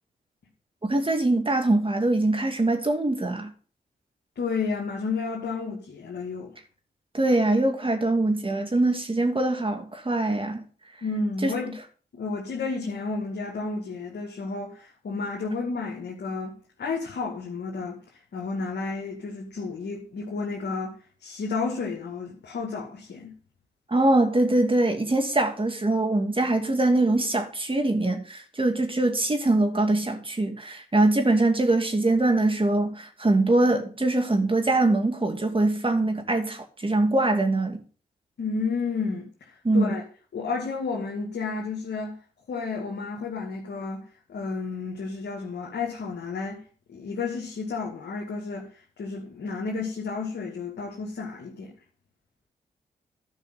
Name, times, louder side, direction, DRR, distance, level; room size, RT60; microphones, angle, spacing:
voice 1, 0.9-3.5 7.1-10.6 11.4-11.5 23.9-37.8 39.6-39.9, right 2 dB, 30° right, 2.5 m, -23 dB
voice 2, 4.4-6.5 11.0-11.8 12.1-18.0 18.3-23.3 38.4-40.0 40.3-42.2 42.5-46.6 46.9-48.7 49.0-51.7, left 4 dB, 75° left, 2.2 m, -31 dB
11.5 x 5.5 x 5.8 m
supercardioid pair, 40°, 18 cm